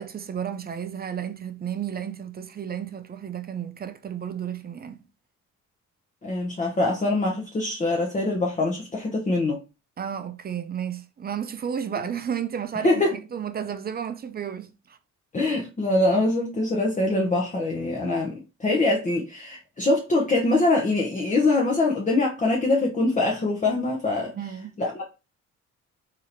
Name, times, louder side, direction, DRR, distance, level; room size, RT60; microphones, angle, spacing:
voice 1, 0.0-5.0 10.0-15.0 24.3-24.8, right 8 dB, 30° right, 0.5 m, -32 dB
voice 2, 6.2-9.6 12.8-13.2 15.3-24.3 24.8-25.1, left 2 dB, 25° left, 0.8 m, -23 dB
3.6 x 2.8 x 2.9 m
cardioid pair, 90°, 30 cm